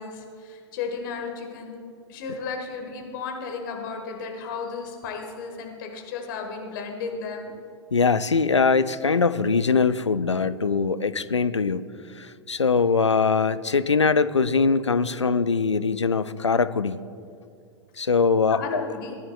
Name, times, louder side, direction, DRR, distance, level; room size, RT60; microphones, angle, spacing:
voice 1, 0.0-1.8 2.1-7.5 18.5-19.2, left 5 dB, 45° left, 3 dB, 1.5 m, -34 dB
voice 2, 7.9-11.9 12.2-17.0 18.0-18.8, left 4 dB, 85° left, 15 dB, 0.4 m, -22 dB
17.5 x 10.0 x 2.3 m, 2.5 s
figure-of-eight pair, 95°, 15 cm